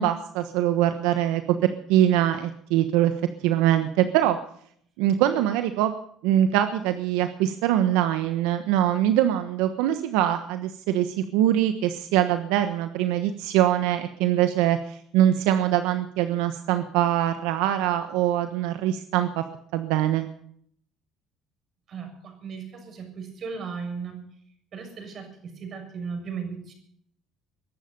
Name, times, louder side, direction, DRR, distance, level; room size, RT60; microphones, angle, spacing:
voice 1, 0.0-3.1 3.4-4.4 5.0-5.9 6.2-19.4 19.7-20.3, right 12 dB, 85° right, 9 dB, 1.2 m, -23 dB
voice 2, 21.9-24.2 24.7-26.7, right 5 dB, 50° right, 5 dB, 6.8 m, -36 dB
22.0 x 11.5 x 5.4 m, 0.64 s
cardioid pair, 105°, 0 cm